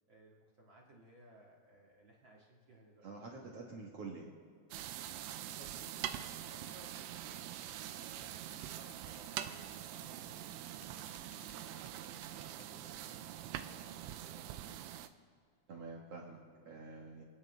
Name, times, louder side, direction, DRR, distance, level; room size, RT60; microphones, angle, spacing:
voice 1, 0.1-3.1 5.4-15.0, right 2 dB, 45° right, -3 dB, 1.6 m, -60 dB
voice 2, 3.0-4.3 15.7-17.2, right 3 dB, 70° right, -2 dB, 1.4 m, -47 dB
sound 1, 4.7-15.1, right 12 dB, 85° right, 2.7 m, -44 dB
sound 2, 6.3-12.6, left 11 dB, 80° left, 1.9 m, -62 dB
29.5 x 9.9 x 3.4 m, 2.2 s
omnidirectional pair, 4.8 m